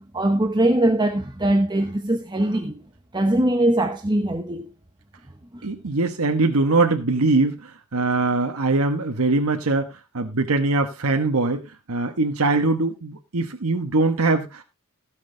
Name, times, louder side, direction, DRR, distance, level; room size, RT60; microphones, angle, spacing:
voice 1, 0.0-2.8 3.1-4.7 5.5-5.6, right 1 dB, 20° right, 0.9 m, -21 dB
voice 2, 5.6-9.9 10.1-14.6, right 3 dB, 80° right, 1.2 m, -22 dB
16.5 x 6.4 x 3.8 m
head